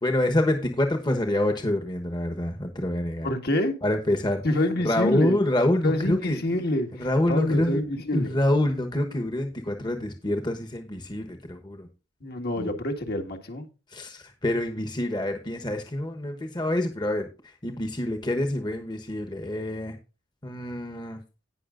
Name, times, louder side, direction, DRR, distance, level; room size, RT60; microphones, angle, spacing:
voice 1, 0.0-3.3 3.8-4.4 4.8-6.4 6.9-7.8 8.1-11.9 12.6-12.7 13.9-17.3 17.6-19.9 20.4-21.2, left 1 dB, 25° left, 1.2 m, -26 dB
voice 2, 3.2-3.7 4.4-5.4 5.8-8.3 12.2-13.7, left 1 dB, 55° left, 1.8 m, -27 dB
18.0 x 6.1 x 2.6 m
head